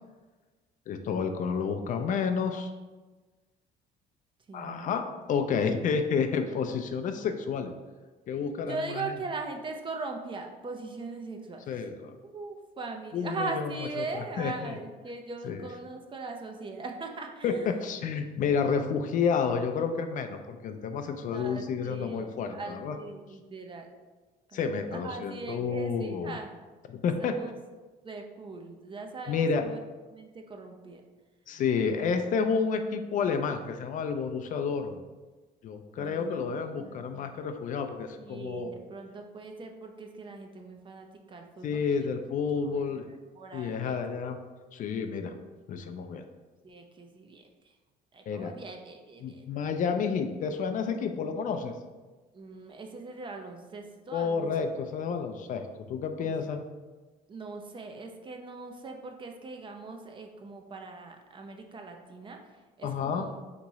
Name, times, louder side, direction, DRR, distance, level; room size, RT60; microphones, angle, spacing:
voice 1, 0.9-2.7 4.5-5.0 5.3-7.7 8.3-9.0 11.7-12.2 13.1-13.7 14.0-14.1 14.4-14.8 15.4-15.7 17.4-17.5 17.8-22.9 24.5-26.4 26.9-27.3 29.3-29.6 31.5-35.0 35.6-38.7 41.6-43.1 43.5-44.4 44.7-45.3 45.7-46.3 48.3-48.6 49.2-51.7 54.1-56.6 62.8-63.3, left 6 dB, 50° left, 6 dB, 0.4 m, -30 dB
voice 2, 4.5-5.0 8.7-11.7 12.2-17.8 21.2-23.9 24.5-24.6 24.9-26.5 27.2-27.5 28.0-29.8 30.1-31.0 36.0-37.3 38.2-42.1 42.7-44.0 46.6-47.7 48.1-49.4 52.3-54.5 56.2-56.3 57.3-63.4, right 3 dB, 30° right, 4 dB, 0.5 m, -40 dB
3.5 x 3.0 x 4.0 m, 1.3 s
cardioid pair, 110°, 17 cm